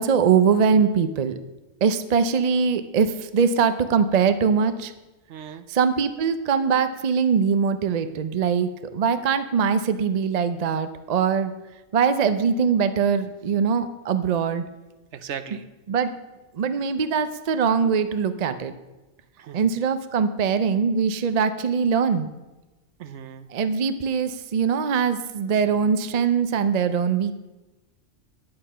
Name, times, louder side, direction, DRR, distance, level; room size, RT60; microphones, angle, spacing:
voice 1, 0.0-1.4 1.8-4.9 5.7-11.5 11.9-14.7 15.5-15.6 15.9-16.1 16.5-18.7 19.5-22.3 23.5-27.3, right 6 dB, 45° right, 11 dB, 0.5 m, -22 dB
voice 2, 5.3-5.7 15.1-15.6 19.4-19.7 23.0-23.5, right 8 dB, 65° right, 11 dB, 0.9 m, -37 dB
9.5 x 8.9 x 5.5 m, 1.1 s
omnidirectional pair, 1.3 m